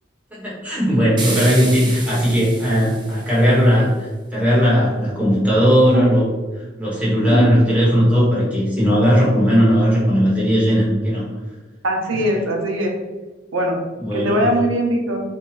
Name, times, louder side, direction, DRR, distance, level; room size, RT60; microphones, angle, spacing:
voice 1, 0.3-3.9 4.3-6.3 6.8-11.3 14.0-14.4, equal, 10° right, -8 dB, 1.1 m, -17 dB
sound 1, 1.2-3.6, right 3 dB, 25° right, 0.5 m, -31 dB
voice 2, 11.8-12.9 13.5-13.7 14.1-15.2, equal, 85° right, 1 dB, 0.8 m, -20 dB
2.8 x 2.3 x 4.1 m, 1.2 s
head